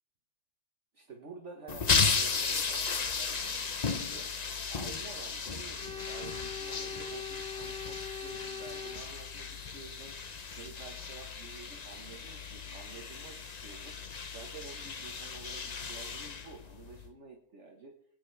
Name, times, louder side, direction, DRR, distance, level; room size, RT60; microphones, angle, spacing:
voice 1, 0.9-3.8 4.1-4.3 4.7-10.2 10.5-14.0 14.3-17.9, right 4 dB, 50° right, 2 dB, 1.6 m, -50 dB
sound 1, 1.7-17.1, left 5 dB, 35° left, 0.7 m, -35 dB
Organ, 5.8-9.7, left 5 dB, 5° left, 3.0 m, -42 dB
22.5 x 9.8 x 3.4 m, 0.66 s
omnidirectional pair, 1.7 m